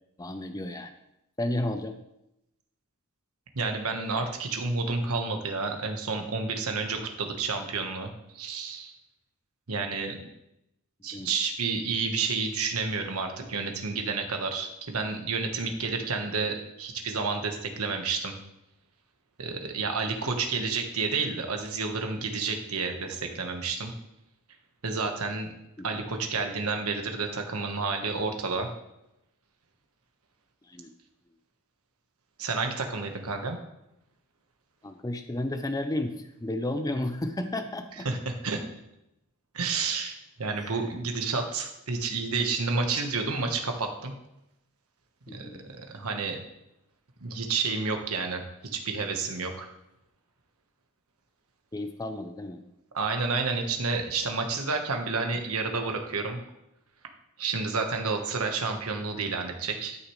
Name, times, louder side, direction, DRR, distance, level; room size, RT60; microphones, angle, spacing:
voice 1, 0.2-0.9 1.4-1.9 11.1-11.3 25.8-26.0 30.7-30.9 34.8-38.1 40.5-40.7 45.3-45.6 51.7-52.6, left 1 dB, 15° left, 7 dB, 0.5 m, -32 dB
voice 2, 3.5-8.1 8.3-8.9 9.7-10.3 11.0-18.4 19.4-23.9 24.8-25.5 25.8-28.7 32.4-33.6 38.0-38.6 39.5-44.1 45.3-46.4 47.2-48.4 48.7-49.7 52.9-56.4 57.4-60.0, right 4 dB, 85° right, 4 dB, 1.3 m, -30 dB
12.0 x 6.6 x 3.2 m, 0.85 s
head